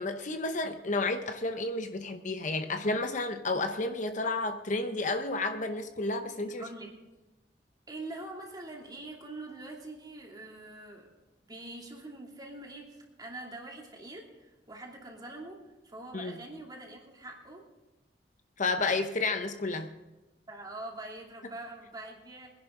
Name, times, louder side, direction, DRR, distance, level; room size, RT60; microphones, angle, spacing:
voice 1, 0.0-6.6 16.1-16.4 18.6-19.9, left 3 dB, 45° left, 7 dB, 0.8 m, -31 dB
voice 2, 6.3-7.0 7.9-11.1 11.5-17.7 20.5-22.5, right 2 dB, 25° right, -1 dB, 2.8 m, -44 dB
23.0 x 10.5 x 3.8 m, 1.1 s
head